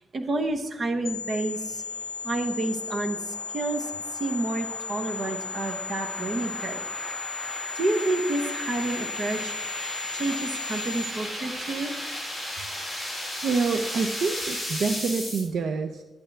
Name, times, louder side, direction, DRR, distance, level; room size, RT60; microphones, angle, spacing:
voice 1, 0.1-1.8 2.2-6.8 7.7-9.6 10.1-11.9, right 2 dB, 40° right, 5 dB, 1.0 m, -29 dB
sound 1, 1.0-11.0, left 5 dB, 50° left, 1.0 m, -35 dB
sound 2, 1.5-15.4, equal, 15° right, 3.2 m, -36 dB
voice 2, 13.4-16.0, right 4 dB, 60° right, 7 dB, 0.6 m, -27 dB
12.0 x 8.7 x 3.4 m, 1.1 s
wide cardioid pair, 150°, 0 cm